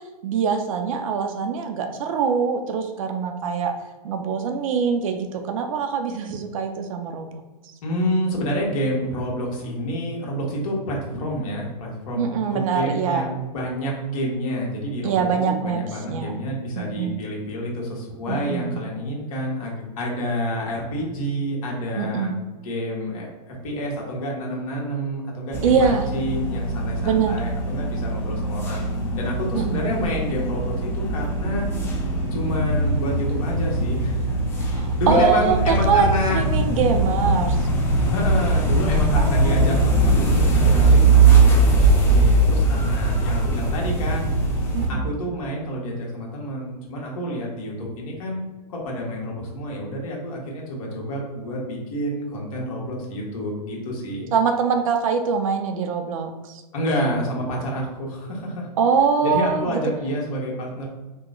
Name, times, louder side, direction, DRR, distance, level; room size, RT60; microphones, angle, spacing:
voice 1, 0.2-3.7 4.0-7.4 12.1-13.3 15.0-15.8 16.1-16.4 16.8-17.1 18.3-18.8 22.0-22.3 25.6-26.1 27.0-27.4 29.5-29.6 34.7-36.1 36.3-37.6 39.2-39.9 40.9-41.2 44.7-45.0 54.3-56.3 58.8-59.6, right 6 dB, 55° right, 5 dB, 0.5 m, -23 dB
voice 2, 7.8-22.3 22.6-28.8 29.2-31.7 32.3-34.4 34.7-36.4 38.1-44.3 44.9-48.4 48.7-54.3 56.7-58.7 59.2-60.9, equal, 60° left, -2 dB, 1.3 m, -28 dB
sound 1, 25.5-44.9, right 2 dB, 10° left, 0.7 m, -20 dB
3.0 x 2.1 x 3.7 m, 1.2 s
hypercardioid pair, 130°, 20 cm